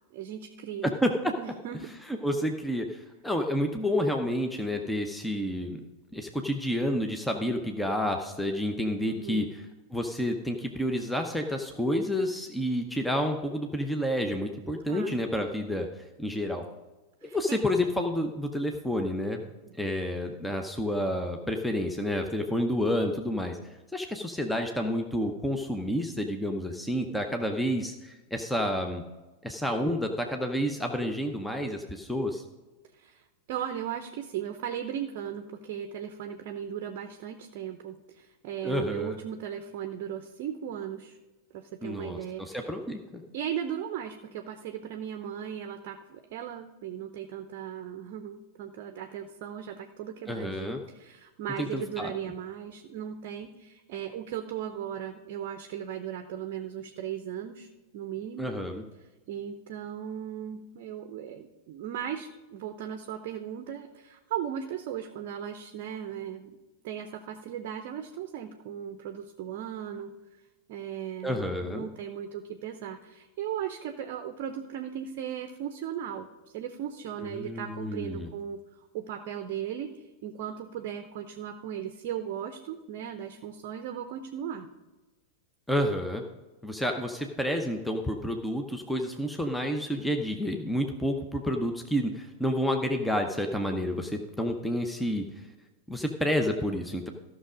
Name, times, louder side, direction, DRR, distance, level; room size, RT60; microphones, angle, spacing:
voice 1, 0.1-0.9 1.4-1.9 9.1-9.5 14.9-15.2 17.2-17.6 19.6-19.9 32.9-41.2 41.5-42.6 43.3-57.7 57.9-58.5 59.3-66.6 66.8-70.1 70.7-76.3 76.5-84.7, right 9 dB, 45° right, 8 dB, 0.7 m, -37 dB
voice 2, 0.8-1.3 2.1-5.8 6.1-9.6 9.9-16.7 17.2-19.4 19.7-23.6 23.9-29.0 29.4-32.4 38.6-39.2 41.8-43.2 50.3-50.8 51.6-52.1 58.4-58.8 71.2-71.9 77.2-78.3 85.7-86.2 86.6-95.2 95.9-97.1, equal, 5° left, 4 dB, 0.8 m, -29 dB
13.5 x 6.2 x 5.0 m, 1.2 s
figure-of-eight pair, 90°, 0 cm